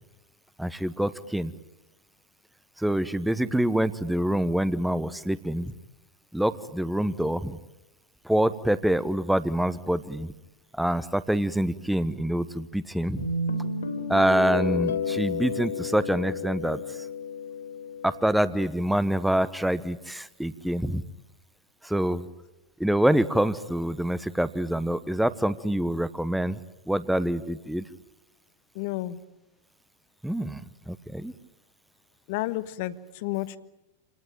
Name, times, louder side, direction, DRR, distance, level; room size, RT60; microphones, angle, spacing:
voice 1, 0.6-1.5 2.8-5.7 6.3-7.6 8.2-10.3 10.7-13.3 14.1-17.1 18.0-21.0 21.8-22.3 22.8-26.6 26.9-27.9 30.2-31.3, right 1 dB, ahead, 15 dB, 1.1 m, -26 dB
Guitar, 13.2-18.2, left 4 dB, 65° left, 3.6 m, -31 dB
voice 2, 28.7-29.2 32.3-33.6, left 16 dB, 50° left, 14 dB, 1.3 m, -31 dB
28.5 x 19.0 x 9.2 m, 0.97 s
figure-of-eight pair, 90°, 0 cm